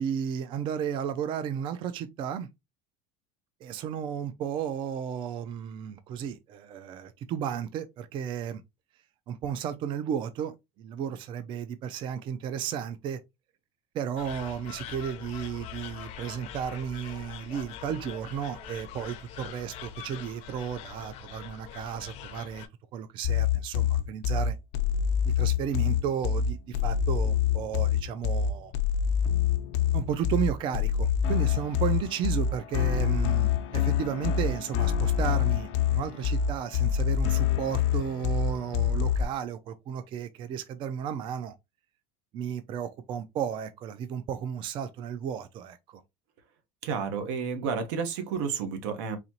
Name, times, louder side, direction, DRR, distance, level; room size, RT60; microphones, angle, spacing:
voice 1, 0.0-2.5 3.6-8.6 9.3-13.2 13.9-22.6 22.9-24.6 25.2-28.7 29.9-41.5 42.3-46.0, right 8 dB, 35° right, 0.4 m, -33 dB
sound 1, 14.2-22.7, left 9 dB, 50° left, 0.6 m, -43 dB
sound 2, 23.2-39.2, left 8 dB, 80° left, 0.7 m, -26 dB
voice 2, 46.8-49.2, right 6 dB, 90° right, 1.2 m, -31 dB
4.1 x 2.9 x 2.8 m
cardioid pair, 170°, 15 cm